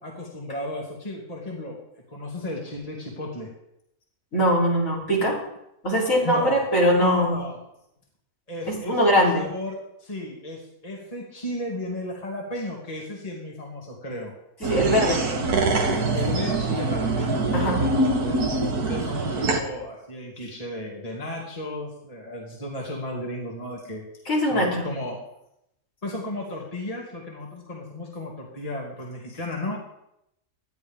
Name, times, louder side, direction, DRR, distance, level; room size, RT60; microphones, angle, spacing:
voice 1, 0.0-3.5 6.2-6.6 6.9-7.6 8.5-14.3 16.1-18.4 18.9-24.0 24.5-25.2 26.0-29.8, left 1 dB, 25° left, -3 dB, 2.8 m, -34 dB
voice 2, 4.3-5.4 5.8-7.4 8.7-9.4 14.6-15.2 17.5-17.8 24.3-24.9, equal, 55° left, -4 dB, 4.4 m, -21 dB
sound 1, 14.6-19.6, right 2 dB, 75° right, 2.1 m, -24 dB
19.0 x 13.0 x 3.7 m, 0.81 s
omnidirectional pair, 1.6 m